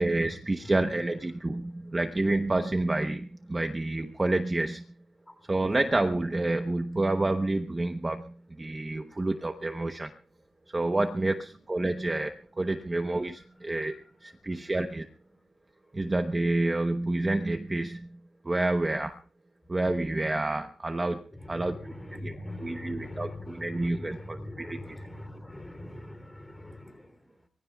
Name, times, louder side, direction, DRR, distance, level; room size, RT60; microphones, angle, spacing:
voice 1, 0.0-4.8 5.5-10.1 10.7-15.1 15.9-18.2 18.4-19.2 19.7-21.8 22.2-22.3 22.6-24.8, right 2 dB, 15° right, 0.9 m, -29 dB
voice 2, 0.6-1.1 1.7-1.8 5.3-5.4 11.3-11.7 13.4-13.5 13.9-14.0 14.4-14.8 21.3-27.5, left 1 dB, 10° left, 3.3 m, -43 dB
24.0 x 22.0 x 2.4 m
wide cardioid pair, 170°, 0 cm